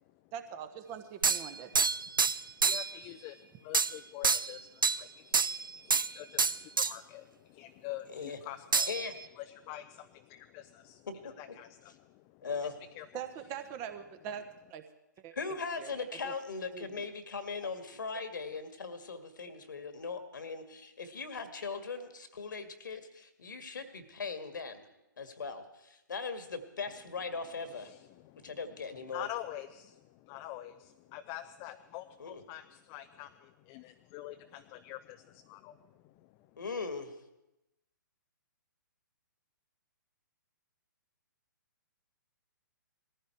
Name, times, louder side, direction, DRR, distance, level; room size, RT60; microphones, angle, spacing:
voice 1, 0.3-1.7 13.1-14.4 14.7-14.8 15.2-15.3 15.8-16.3 16.7-17.0 17.6-17.7, right 9 dB, 25° right, 9 dB, 1.2 m, -42 dB
sound 1, 1.2-3.0 3.7-4.0 4.2-5.0 5.3-6.1 6.4-6.9 8.7-9.2, right 5 dB, 80° right, 0.5 m, -28 dB
voice 2, 2.6-5.1 5.3-8.9 9.4-13.1 27.7-28.6 29.1-36.6, left 14 dB, 25° left, 8 dB, 0.5 m, -46 dB
voice 3, 12.4-12.7 15.3-24.8 25.2-27.9 28.4-29.3 32.2-32.4 36.6-37.1, left 4 dB, 70° left, 9 dB, 1.9 m, -39 dB
19.5 x 14.5 x 4.6 m, 0.92 s
figure-of-eight pair, 130°, 11 cm